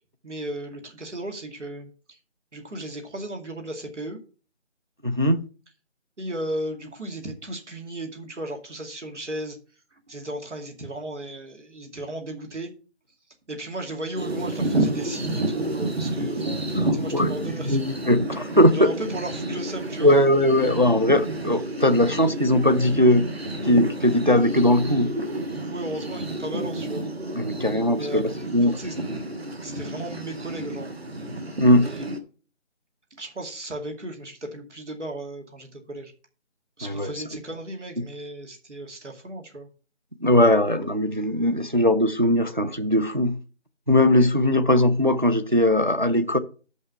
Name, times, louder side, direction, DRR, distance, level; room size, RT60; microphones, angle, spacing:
voice 1, 0.2-2.2 2.5-4.2 6.2-9.6 9.9-12.7 13.5-17.8 18.7-20.1 25.7-27.1 28.0-29.0 29.6-30.9 31.8-32.1 33.2-36.1 36.8-39.7, right 1 dB, 70° right, 2.5 m, -35 dB
voice 2, 5.0-5.4 16.8-17.3 17.6-18.7 20.0-23.2 23.6-25.1 27.4-28.8 31.6-31.9 36.8-37.1 40.2-43.4 43.9-46.4, left 1 dB, 40° right, 0.5 m, -20 dB
sound 1, 14.1-32.2, right 1 dB, 55° right, 1.4 m, -30 dB
6.7 x 5.4 x 6.9 m
figure-of-eight pair, 175°, 37 cm